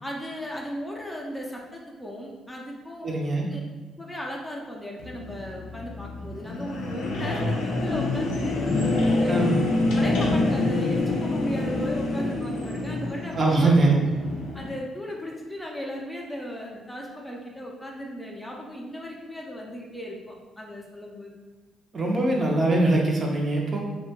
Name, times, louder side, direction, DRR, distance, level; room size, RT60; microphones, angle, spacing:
voice 1, 0.0-3.1 3.5-3.6 4.0-8.6 9.0-9.6 9.9-13.7 14.5-21.3, equal, 10° left, -1 dB, 0.4 m, -36 dB
voice 2, 3.0-3.5 9.3-9.6 13.3-14.0 21.9-23.9, right 2 dB, 40° right, -1 dB, 0.5 m, -22 dB
sound 1, 5.0-14.7, left 2 dB, 90° left, 0.4 m, -26 dB
2.7 x 2.2 x 2.7 m, 1.3 s
cardioid pair, 90°, 0 cm